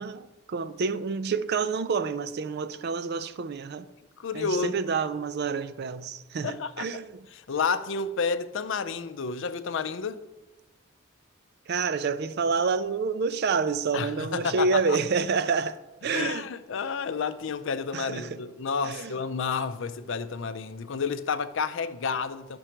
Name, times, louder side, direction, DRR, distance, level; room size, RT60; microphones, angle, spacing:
voice 1, 0.0-3.9 4.3-7.2 11.7-15.8 16.0-16.5 17.9-18.3 18.8-19.1, right 5 dB, 55° right, 0.4 m, -28 dB
voice 2, 4.2-4.8 6.4-6.9 7.5-10.2 13.9-15.0 16.1-22.6, left 5 dB, 70° left, 0.5 m, -30 dB
11.0 x 6.1 x 4.5 m
head